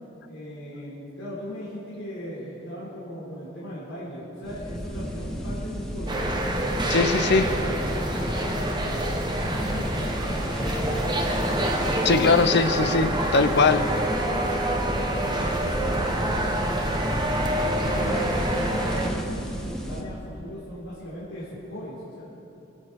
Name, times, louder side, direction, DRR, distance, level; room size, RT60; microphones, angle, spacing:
voice 1, 0.3-6.4 7.2-11.5 13.3-13.8 14.7-22.2, equal, 80° left, -9 dB, 3.9 m, -38 dB
sound 1, 4.4-20.0, equal, 5° left, 1.4 m, -31 dB
sound 2, 6.1-19.1, right 1 dB, 25° right, 1.2 m, -27 dB
voice 2, 6.9-7.5 12.0-13.8, left 4 dB, 60° left, 11 dB, 0.8 m, -20 dB
26.5 x 9.0 x 4.7 m, 3.0 s
head